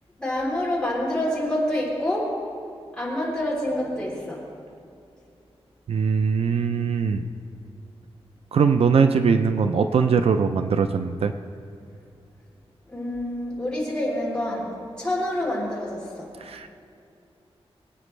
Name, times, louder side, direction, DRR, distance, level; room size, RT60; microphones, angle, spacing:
voice 1, 0.2-2.3 3.0-4.4 12.9-14.7 15.0-16.3, left 1 dB, 10° left, -6 dB, 3.3 m, -27 dB
voice 2, 5.9-7.2 8.5-11.3 16.4-16.7, right 5 dB, 65° right, 8 dB, 0.5 m, -21 dB
23.0 x 9.0 x 3.2 m, 2.5 s
wide cardioid pair, 165°, 11 cm